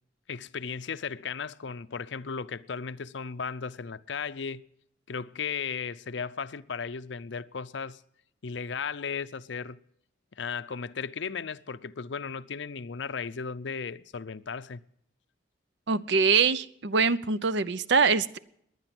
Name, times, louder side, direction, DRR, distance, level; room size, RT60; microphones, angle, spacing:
voice 1, 0.3-4.6 5.1-8.0 8.4-9.8 10.3-14.8, left 5 dB, 70° left, 0.6 m, -35 dB
voice 2, 15.9-18.4, right 5 dB, 65° right, 0.7 m, -24 dB
19.0 x 11.0 x 6.0 m
head